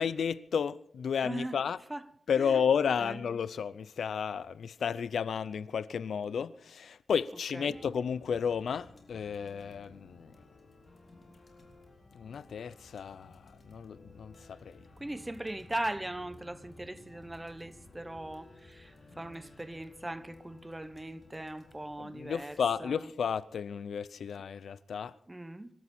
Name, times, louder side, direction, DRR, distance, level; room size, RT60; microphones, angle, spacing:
voice 1, 0.0-1.8 2.3-10.3 12.1-14.8 22.0-25.1, left 7 dB, 85° left, 0.6 m, -32 dB
voice 2, 1.2-1.6 1.9-2.0 2.4-2.6 3.0-3.2 7.5-7.8 15.0-23.1 25.3-25.7, right 1 dB, 15° right, 0.9 m, -39 dB
sound 1, 7.7-23.0, left 2 dB, 40° left, 4.0 m, -56 dB
26.0 x 13.0 x 4.4 m
wide cardioid pair, 90°, 0 cm